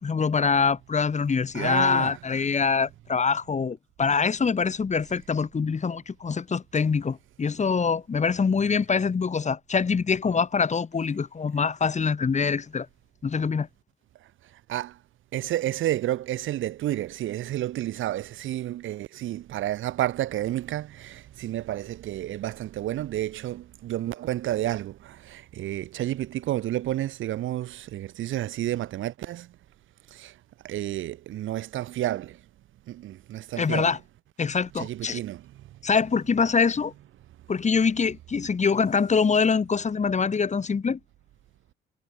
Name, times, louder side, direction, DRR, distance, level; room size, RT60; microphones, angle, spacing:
voice 1, 0.0-12.9 13.2-13.7 33.6-34.0 34.4-35.2 35.8-36.9 37.5-41.0, left 5 dB, 35° left, 3.0 m, -24 dB
voice 2, 1.5-2.2 14.7-14.9 15.3-29.5 30.1-30.3 30.6-32.4 32.9-34.0 34.8-35.4, right 13 dB, 80° right, 2.1 m, -30 dB
cardioid pair, 90°, 20 cm